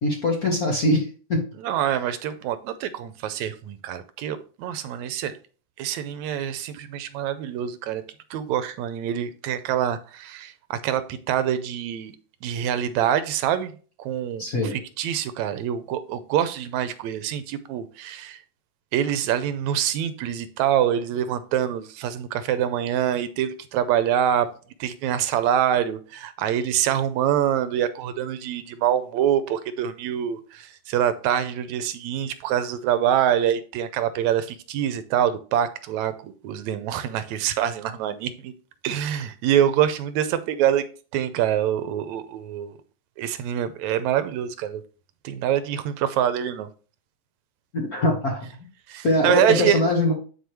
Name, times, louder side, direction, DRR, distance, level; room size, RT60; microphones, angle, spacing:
voice 1, 0.0-1.4 14.4-14.7 47.7-48.4 49.0-50.1, left 1 dB, 45° left, 1.3 m, -22 dB
voice 2, 1.6-5.4 5.8-8.0 8.3-12.1 12.4-13.7 14.0-18.4 18.9-24.5 24.8-38.5 38.8-40.8 41.1-42.8 43.2-44.8 45.2-46.7 48.9-49.8, right 10 dB, 85° right, 2.0 m, -25 dB
10.5 x 4.8 x 3.1 m
omnidirectional pair, 3.3 m